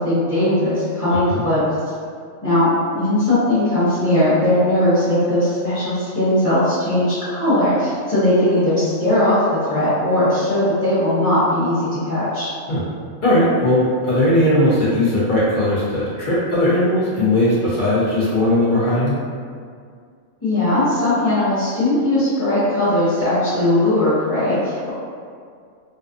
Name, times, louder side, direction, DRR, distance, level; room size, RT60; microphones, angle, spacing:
voice 1, 0.0-1.6 2.4-12.5 20.4-24.9, left 1 dB, 10° left, -17 dB, 0.7 m, -19 dB
voice 2, 13.2-19.2, left 1 dB, 55° left, -9 dB, 0.6 m, -18 dB
2.5 x 2.3 x 2.4 m, 2.1 s
omnidirectional pair, 1.3 m